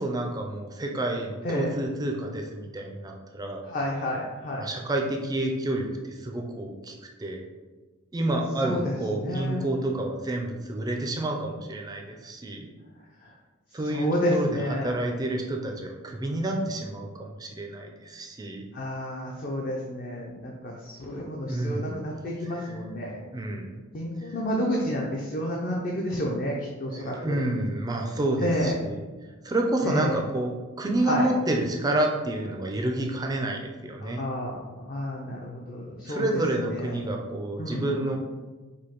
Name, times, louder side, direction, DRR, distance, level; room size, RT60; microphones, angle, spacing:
voice 1, 0.0-3.6 4.6-6.9 7.2-7.4 8.1-12.7 13.7-18.7 21.5-22.0 22.5-22.7 23.3-23.8 24.2-24.3 26.9-29.0 29.4-30.5 30.8-34.2 36.1-38.2, right 1 dB, 20° right, 1 dB, 0.3 m, -29 dB
voice 2, 3.6-4.7 8.6-9.7 13.2-13.3 13.8-14.9 18.7-23.2 23.9-27.4 28.4-28.8 29.8-30.2 31.0-31.3 34.0-36.9 37.6-38.2, equal, 40° left, -2 dB, 0.5 m, -30 dB
4.9 x 2.1 x 2.9 m, 1.3 s
head